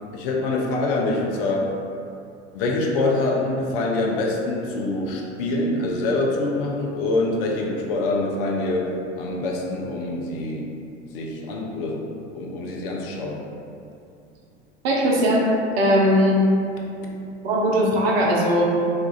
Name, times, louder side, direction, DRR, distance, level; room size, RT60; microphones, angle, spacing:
voice 1, 0.1-1.7 2.5-10.7 11.1-12.1 12.3-13.5, left 2 dB, 55° left, -1 dB, 0.6 m, -25 dB
voice 2, 14.8-16.5 17.4-18.7, equal, 60° right, -2 dB, 0.7 m, -19 dB
4.3 x 2.3 x 2.4 m, 2.6 s
figure-of-eight pair, 75°, 35 cm